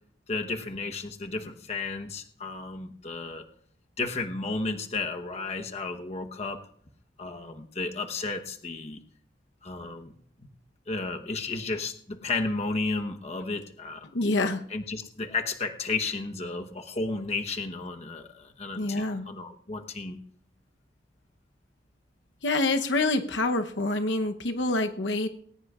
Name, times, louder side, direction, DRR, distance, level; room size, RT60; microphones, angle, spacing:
voice 1, 0.3-3.4 4.0-6.7 7.2-9.0 9.6-10.1 10.9-14.1 14.7-20.2, left 3 dB, 40° left, 5 dB, 1.1 m, -33 dB
voice 2, 14.1-14.6 18.8-19.3 22.4-25.3, left 2 dB, 85° left, 6 dB, 0.9 m, -26 dB
19.5 x 18.5 x 2.4 m, 0.63 s
head